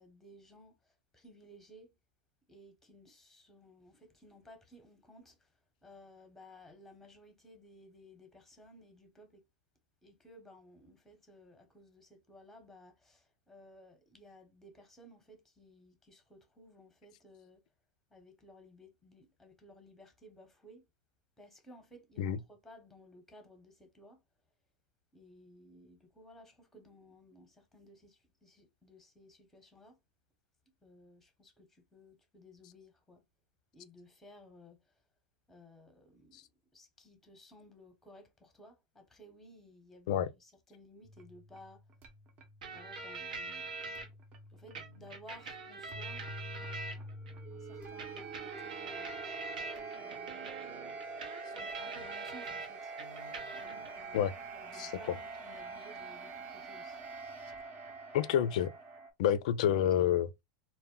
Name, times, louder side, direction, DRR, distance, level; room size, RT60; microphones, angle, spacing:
voice 1, 0.0-1.9 2.5-9.4 10.0-17.6 18.1-20.8 21.4-24.2 25.1-30.0 30.8-33.2 33.7-35.0 35.5-36.4 36.7-41.8 42.7-44.1 44.5-47.2 47.5-49.2 49.9-51.0 51.5-52.9 53.5-57.0, left 1 dB, 5° left, 0.8 m, -57 dB
sound 1, 41.0-59.1, right 3 dB, 40° right, 0.7 m, -46 dB
sound 2, 42.6-44.1 44.8-47.3 48.0-52.7 53.0-53.9, right 3 dB, 85° right, 0.8 m, -44 dB
voice 2, 54.7-55.2 58.1-58.7 59.2-60.3, left 10 dB, 70° left, 0.3 m, -29 dB
2.1 x 2.1 x 3.6 m
hypercardioid pair, 115°, 4 cm